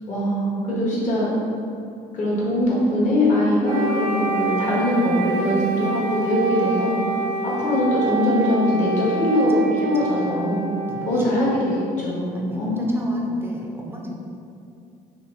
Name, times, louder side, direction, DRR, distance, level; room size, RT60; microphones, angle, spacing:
voice 1, 0.1-1.3 2.1-7.0 7.4-10.6 11.1-11.5 12.0-13.3, left 1 dB, 45° left, -6 dB, 1.3 m, -22 dB
Wind instrument woodwind instrument, 3.6-11.7, right 4 dB, 75° right, 0.6 m, -27 dB
voice 2, 9.5-10.5 10.9-11.6 12.3-14.1, equal, 15° right, -1 dB, 0.6 m, -35 dB
5.8 x 2.1 x 3.4 m, 2.6 s
cardioid pair, 110°, 17 cm